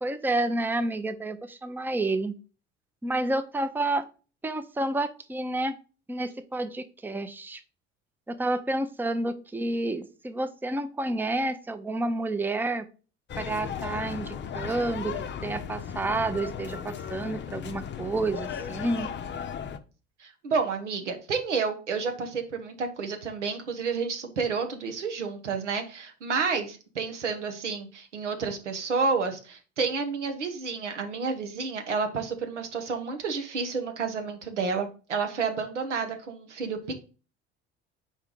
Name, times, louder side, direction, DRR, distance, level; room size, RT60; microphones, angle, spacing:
voice 1, 0.0-2.3 3.0-4.1 4.4-5.8 6.1-7.6 8.3-12.9 13.4-19.1, right 2 dB, 5° right, 10 dB, 0.6 m, -29 dB
sound 1, 13.3-19.8, left 8 dB, 30° left, 0.7 m, -36 dB
voice 2, 20.2-36.8, right 5 dB, 85° right, 5 dB, 1.0 m, -30 dB
4.6 x 4.5 x 5.2 m, 0.35 s
figure-of-eight pair, 55°, 35 cm